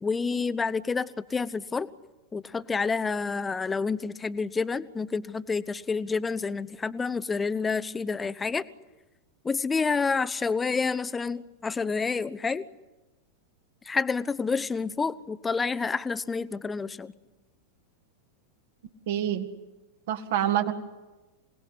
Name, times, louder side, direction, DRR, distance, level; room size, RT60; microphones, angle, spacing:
voice 1, 0.0-1.9 2.3-8.6 9.4-12.7 13.8-17.1, left 4 dB, 15° left, 17 dB, 0.9 m, -29 dB
voice 2, 19.1-19.5 20.1-20.7, right 11 dB, 55° right, 8 dB, 2.1 m, -26 dB
27.5 x 19.0 x 10.0 m, 1.1 s
figure-of-eight pair, 90°, 0 cm